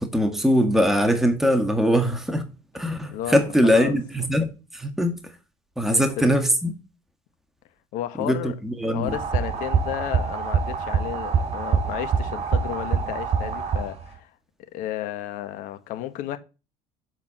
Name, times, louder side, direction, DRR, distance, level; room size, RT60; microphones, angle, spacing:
voice 1, 0.0-2.5 2.7-5.3 5.8-6.7 8.2-9.1, equal, ahead, 1.7 m, -22 dB
voice 2, 3.1-4.0 5.8-6.2 7.9-8.5 8.8-14.3 14.7-16.4, left 12 dB, 70° left, 1.2 m, -33 dB
sound 1, 9.1-14.2, right 6 dB, 50° right, 3.3 m, -25 dB
7.6 x 4.8 x 7.3 m
supercardioid pair, 80°, 14 cm